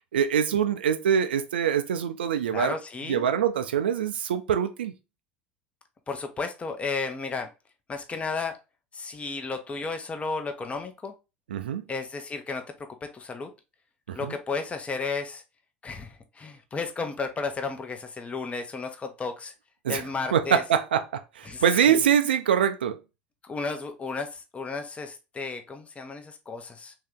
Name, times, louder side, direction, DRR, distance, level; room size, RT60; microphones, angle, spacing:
voice 1, 0.1-2.8 3.1-4.9 11.5-11.8 14.1-14.3 19.8-20.0 20.3-23.0, right 8 dB, 85° right, 0.5 m, -24 dB
voice 2, 2.5-3.3 6.1-7.5 7.9-8.6 8.9-11.1 11.9-13.5 14.1-15.4 15.8-19.5 19.9-20.6 21.5-22.0 23.4-26.9, left 4 dB, 25° left, 0.8 m, -33 dB
3.2 x 2.8 x 3.6 m
hypercardioid pair, 80°, 5 cm